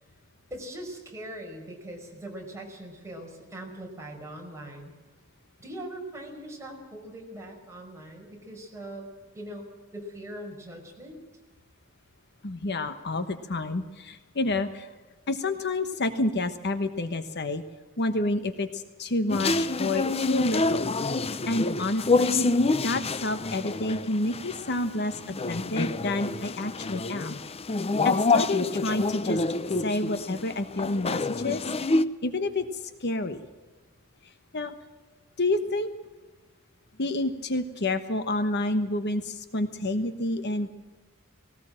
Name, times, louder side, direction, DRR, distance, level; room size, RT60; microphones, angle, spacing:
voice 1, 0.5-4.9 5.6-9.1 9.3-11.2, right 1 dB, 15° right, 0 dB, 5.0 m, -41 dB
voice 2, 12.4-14.9 15.3-17.6 18.0-20.9 21.5-22.5 22.8-25.2 25.5-27.4 28.0-29.4 29.8-31.7 32.2-33.4 34.2-34.7 35.4-35.9 37.0-40.7, left 2 dB, 50° left, 10 dB, 1.2 m, -29 dB
sound 1, 19.3-32.0, left 3 dB, 30° left, 0.6 m, -27 dB
19.0 x 18.5 x 7.6 m, 1.3 s
head